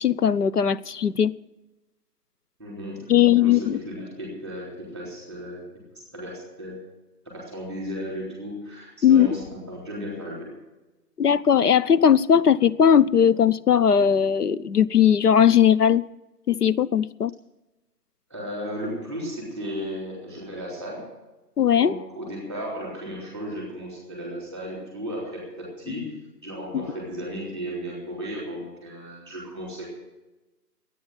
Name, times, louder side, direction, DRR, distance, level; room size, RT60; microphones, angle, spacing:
voice 1, 0.0-1.3 3.1-3.8 9.0-9.3 11.2-16.0 16.5-17.3 21.6-21.9 26.7-26.8, left 8 dB, 65° left, 0.7 m, -18 dB
voice 2, 2.6-5.6 5.9-6.8 7.2-10.5 18.3-21.1 21.8-26.1 26.4-29.9, equal, 5° left, 3.4 m, -35 dB
14.0 x 9.4 x 9.0 m
figure-of-eight pair, 170°, 50 cm